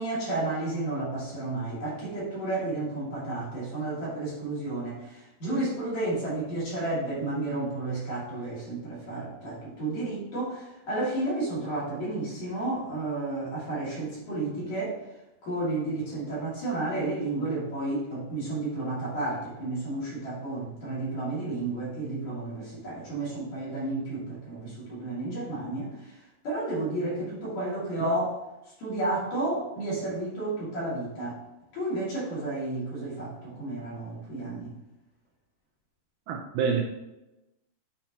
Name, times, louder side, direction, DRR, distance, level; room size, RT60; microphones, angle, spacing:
voice 1, 0.0-15.0 15.4-26.2 26.4-28.4 28.8-31.4 31.7-34.7, right 2 dB, 50° left, -7 dB, 3.4 m, -32 dB
voice 2, 36.3-36.8, right 6 dB, 80° right, 1 dB, 2.3 m, -27 dB
9.8 x 4.3 x 2.9 m, 0.97 s
omnidirectional pair, 4.8 m